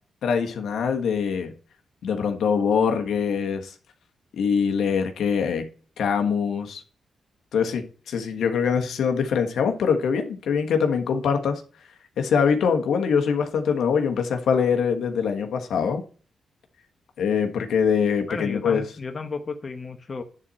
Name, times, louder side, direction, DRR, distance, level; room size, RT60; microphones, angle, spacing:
voice 1, 0.2-1.5 2.0-3.7 4.3-5.7 6.0-6.8 7.5-11.6 12.2-16.0 17.2-18.8, left 6 dB, 80° left, 1.5 m, -23 dB
voice 2, 18.3-20.2, left 4 dB, 45° left, 1.2 m, -33 dB
10.5 x 4.3 x 7.6 m
cardioid pair, 75°, 0 cm